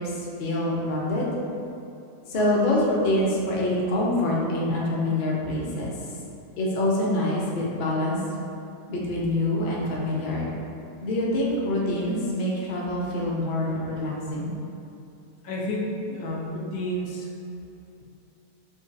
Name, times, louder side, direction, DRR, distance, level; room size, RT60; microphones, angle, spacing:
voice 1, 0.0-1.3 2.3-5.9 6.6-8.2 8.9-10.4 11.0-14.5, left 1 dB, 60° left, -4 dB, 0.5 m, -25 dB
voice 2, 15.4-17.3, equal, 80° left, -2 dB, 1.1 m, -30 dB
5.0 x 2.3 x 2.6 m, 2.7 s
omnidirectional pair, 1.6 m